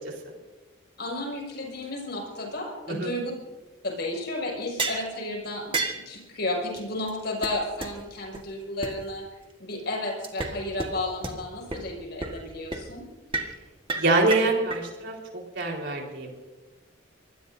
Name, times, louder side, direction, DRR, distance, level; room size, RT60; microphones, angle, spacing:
voice 1, 1.0-3.3 3.8-9.3 9.6-13.0, left 1 dB, 55° left, 0 dB, 6.1 m, -32 dB
sound 1, 4.8-5.1 5.7-6.0 6.8-6.9 7.1-7.2 7.4-7.5 7.8-7.9 8.3-8.4 8.8-8.9 10.2-10.5 10.8-10.9 11.2-11.3 11.7-11.8 12.2-12.4 12.7-12.8 13.3-13.5 13.9-14.8, right 3 dB, 25° right, 1.7 m, -30 dB
voice 2, 14.0-15.1 15.5-16.3, right 2 dB, 60° right, 0 dB, 4.4 m, -24 dB
25.5 x 20.5 x 2.7 m, 1.2 s
head